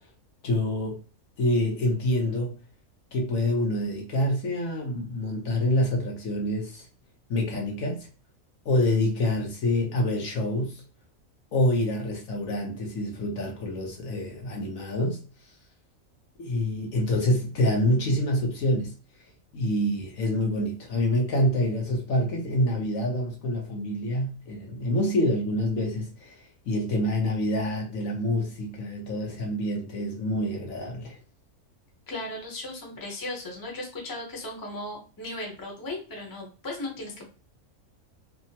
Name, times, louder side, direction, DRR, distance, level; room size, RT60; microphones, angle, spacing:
voice 1, 0.4-1.0 1.4-2.5 3.1-6.8 7.3-8.1 8.6-10.8 11.5-15.2 16.4-18.9 19.5-26.4 26.7-31.2, left 1 dB, 75° left, 1.3 m, -26 dB
voice 2, 32.1-37.3, left 2 dB, 20° left, 0.7 m, -36 dB
3.4 x 2.1 x 2.7 m
omnidirectional pair, 1.5 m